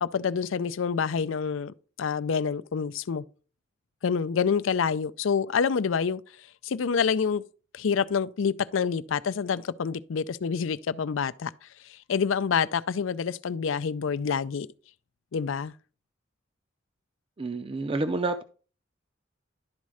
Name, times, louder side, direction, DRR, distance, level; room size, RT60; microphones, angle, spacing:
voice 1, 0.0-3.2 4.0-6.2 6.6-7.4 7.7-11.5 11.9-14.7 15.3-15.7, left 6 dB, 85° left, 0.5 m, -27 dB
voice 2, 17.4-18.4, right 2 dB, 30° right, 0.5 m, -29 dB
11.5 x 4.2 x 4.9 m
head